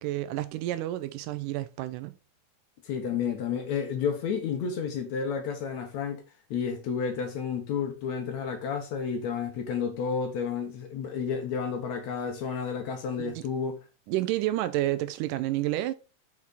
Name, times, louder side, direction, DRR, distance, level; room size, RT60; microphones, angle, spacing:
voice 1, 0.0-2.2 13.2-13.4 14.1-15.9, right 15 dB, 80° right, 2.0 m, -30 dB
voice 2, 2.8-6.2 6.5-13.8, left 6 dB, 70° left, 2.0 m, -31 dB
6.5 x 5.7 x 4.0 m
omnidirectional pair, 3.9 m